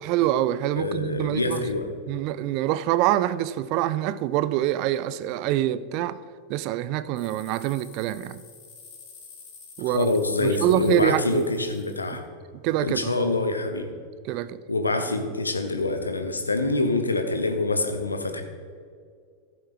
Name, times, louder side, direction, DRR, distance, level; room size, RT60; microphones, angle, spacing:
voice 1, 0.0-1.6 2.1-6.2 6.5-8.4 9.8-10.1 10.4-11.5 12.6-13.2 14.2-14.6, right 13 dB, 45° right, 0.5 m, -25 dB
voice 2, 0.8-1.9 9.9-12.2 12.8-13.9 14.7-18.4, left 2 dB, 80° left, 1.2 m, -25 dB
sound 1, 7.2-12.2, left 5 dB, 40° left, 2.6 m, -48 dB
15.0 x 8.0 x 3.4 m
figure-of-eight pair, 90°, 0 cm